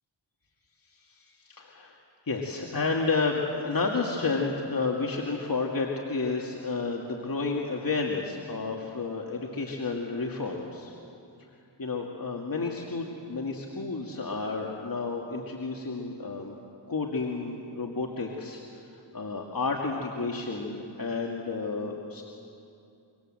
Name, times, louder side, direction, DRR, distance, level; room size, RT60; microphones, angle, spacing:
voice 1, 1.1-2.0 2.3-10.9 11.8-16.6 16.9-18.6 18.9-22.2, left 4 dB, 50° left, 0 dB, 2.3 m, -31 dB
26.0 x 24.0 x 7.8 m, 2.6 s
cardioid pair, 55°, 44 cm